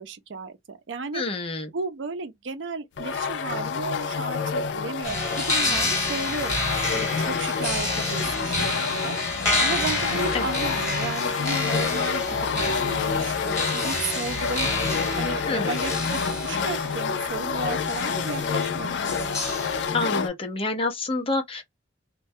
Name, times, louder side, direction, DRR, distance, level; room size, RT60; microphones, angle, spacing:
voice 1, 0.0-1.2 1.7-6.6 6.9-9.2 9.6-14.7 15.2-19.4, right 4 dB, 85° right, 0.5 m, -34 dB
voice 2, 1.1-1.7 10.3-10.5 15.5-15.9 19.9-21.6, left 3 dB, 30° left, 0.6 m, -28 dB
sound 1, 3.0-20.3, left 5 dB, 70° left, 0.4 m, -28 dB
sound 2, 5.0-19.9, left 2 dB, 15° left, 1.3 m, -29 dB
2.2 x 2.1 x 2.6 m
head